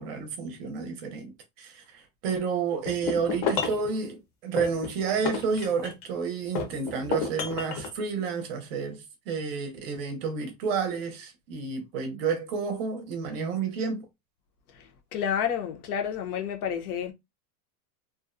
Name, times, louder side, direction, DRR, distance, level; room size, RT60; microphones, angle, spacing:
voice 1, 0.0-14.1, right 5 dB, 45° right, 0.6 m, -30 dB
sound 1, 2.9-3.9 4.6-6.1 6.6-7.9, left 5 dB, 45° left, 0.7 m, -31 dB
voice 2, 14.7-17.1, left 8 dB, 80° left, 0.8 m, -30 dB
2.5 x 2.0 x 2.4 m
supercardioid pair, 175°, 44 cm